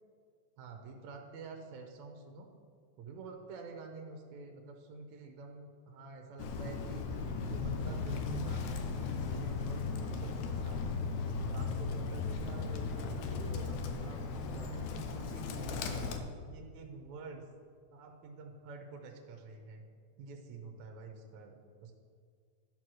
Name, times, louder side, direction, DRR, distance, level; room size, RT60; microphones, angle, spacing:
voice 1, 0.6-2.5 3.0-7.2 7.5-10.8 11.4-15.9 16.5-17.4 17.9-19.8 20.2-21.9, right 3 dB, 75° right, 3 dB, 2.1 m, -48 dB
Bird, 6.4-16.2, left 4 dB, 75° left, 2.0 m, -36 dB
11.0 x 4.5 x 6.2 m, 2.1 s
omnidirectional pair, 3.4 m